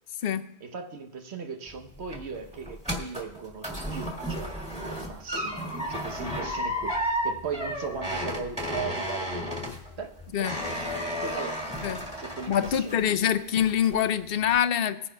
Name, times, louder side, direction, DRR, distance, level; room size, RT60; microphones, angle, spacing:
voice 1, 0.6-9.6 10.0-10.8 11.2-11.6 12.2-13.1, right 5 dB, 85° right, 1.1 m, -38 dB
sound 1, 1.7-13.2 13.6-14.1 14.5-14.6, equal, 5° right, 1.6 m, -33 dB
voice 2, 12.5-15.1, left 9 dB, 65° left, 0.8 m, -25 dB
20.0 x 10.0 x 2.2 m
omnidirectional pair, 1.1 m